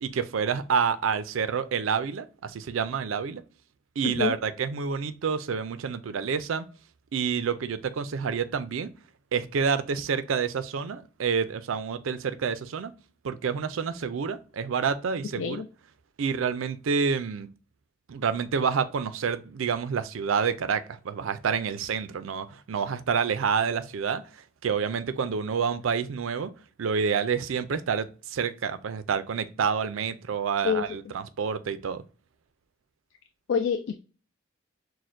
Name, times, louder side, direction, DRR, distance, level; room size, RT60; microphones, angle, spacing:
voice 1, 0.0-3.4 4.0-6.7 7.1-8.9 9.3-12.9 13.2-15.6 16.2-17.5 18.1-26.5 26.8-32.0, right 6 dB, 85° right, 0.4 m, -28 dB
voice 2, 4.0-4.3 15.4-15.7 30.6-30.8 33.5-34.0, left 6 dB, 65° left, 0.3 m, -26 dB
6.2 x 2.1 x 2.6 m
head